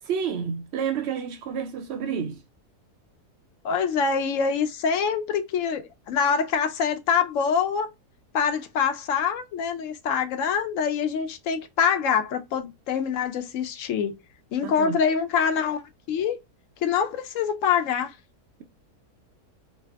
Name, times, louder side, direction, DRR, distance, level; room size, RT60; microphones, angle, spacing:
voice 1, 0.0-2.4 14.6-15.0, right 7 dB, 90° right, 0.5 m, -29 dB
voice 2, 3.6-7.9 8.3-14.2 14.5-16.4 16.8-18.2, left 6 dB, 65° left, 0.8 m, -25 dB
4.0 x 2.0 x 2.2 m
omnidirectional pair, 1.7 m